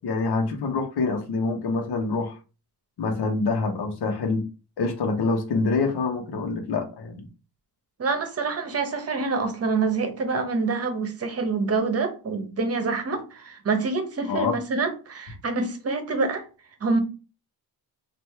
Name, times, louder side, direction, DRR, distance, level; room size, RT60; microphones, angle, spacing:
voice 1, 0.0-2.4 3.0-4.4 4.8-7.3 14.3-14.6, left 3 dB, 75° left, 4 dB, 1.1 m, -26 dB
voice 2, 8.0-16.4 16.8-17.0, right 4 dB, 40° right, 7 dB, 0.9 m, -26 dB
3.4 x 2.6 x 4.6 m, 0.33 s
wide cardioid pair, 145°, 39 cm